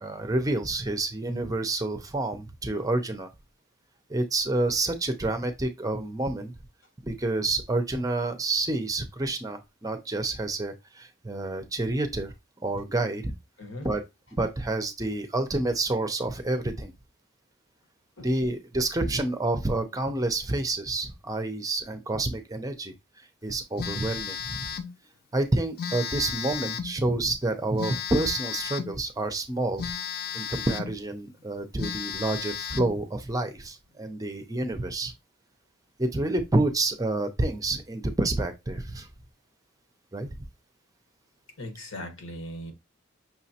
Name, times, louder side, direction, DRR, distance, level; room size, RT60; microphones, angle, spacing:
voice 1, 0.0-3.3 4.1-6.5 7.0-12.3 12.6-13.3 13.8-14.0 14.3-16.9 18.2-24.7 25.3-29.9 30.3-35.1 36.0-39.1 40.1-40.3, right 2 dB, 15° right, 0.5 m, -28 dB
voice 2, 13.6-13.9 18.2-18.3 41.6-42.7, left 1 dB, 80° left, 1.3 m, -38 dB
Telephone, 23.8-25.0 25.8-27.0 27.8-29.0 29.8-31.0 31.4-31.5 31.8-33.0, left 7 dB, 50° left, 0.4 m, -34 dB
5.8 x 3.0 x 2.8 m
head